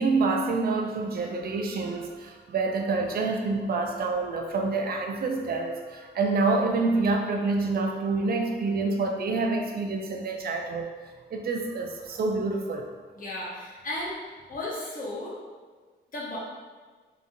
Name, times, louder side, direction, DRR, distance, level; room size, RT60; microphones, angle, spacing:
voice 1, 0.0-10.9 11.3-12.9, right 3 dB, 55° right, 3 dB, 0.4 m, -27 dB
voice 2, 13.2-14.1 14.5-15.4 16.1-16.4, left 1 dB, 45° left, -5 dB, 0.8 m, -34 dB
2.9 x 2.5 x 2.5 m, 1.4 s
wide cardioid pair, 120°, 19 cm